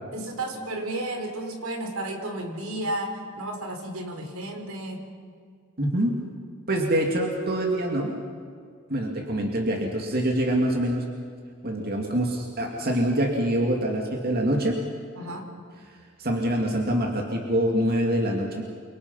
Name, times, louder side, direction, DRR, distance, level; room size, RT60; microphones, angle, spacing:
voice 1, 0.1-5.0 15.2-15.5, right 1 dB, 80° right, 4 dB, 4.0 m, -32 dB
voice 2, 5.8-6.2 6.7-8.1 8.9-11.0 11.6-14.8 16.2-18.6, right 1 dB, 45° right, 1 dB, 2.6 m, -25 dB
29.0 x 25.5 x 5.7 m, 2.1 s
head